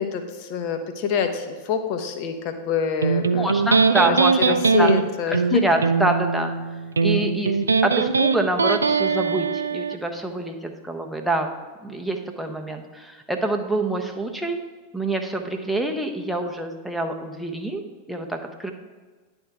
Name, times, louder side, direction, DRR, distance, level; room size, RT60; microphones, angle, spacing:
voice 1, 0.0-3.7 4.0-4.2 4.4-5.6, left 6 dB, 45° left, 7 dB, 0.8 m, -26 dB
Electric guitar, 3.0-10.0, right 5 dB, 75° right, 0.3 m, -21 dB
voice 2, 3.3-5.0 5.3-6.5 7.0-9.5 9.7-11.5 11.8-14.6 14.9-17.8 18.1-18.7, right 1 dB, ahead, 2 dB, 0.7 m, -26 dB
10.5 x 3.5 x 4.6 m, 1.4 s
figure-of-eight pair, 90°, 0 cm